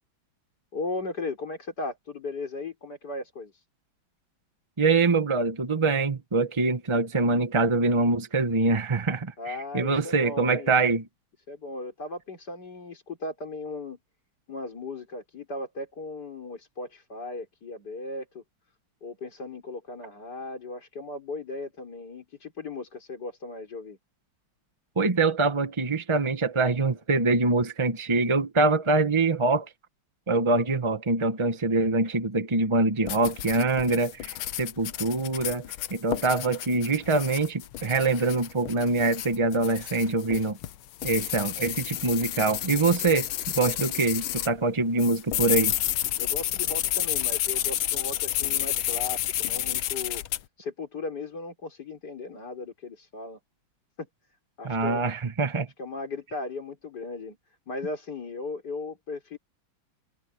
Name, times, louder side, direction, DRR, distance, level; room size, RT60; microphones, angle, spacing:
voice 1, 0.7-3.6 9.4-10.7 11.5-14.0 14.5-18.4 19.0-24.0 46.2-50.2 50.6-53.4 54.0-54.1 54.6-55.1 55.8-57.4 57.7-59.4, left 3 dB, 50° left, 4.9 m, -37 dB
voice 2, 4.8-11.0 25.0-29.7 30.3-35.6 35.9-40.6 41.0-43.3 43.6-45.8 54.6-55.7, right 3 dB, 30° right, 0.5 m, -24 dB
sound 1, 33.1-44.5 45.0-50.4, left 13 dB, 85° left, 1.7 m, -30 dB
omnidirectional pair, 2.2 m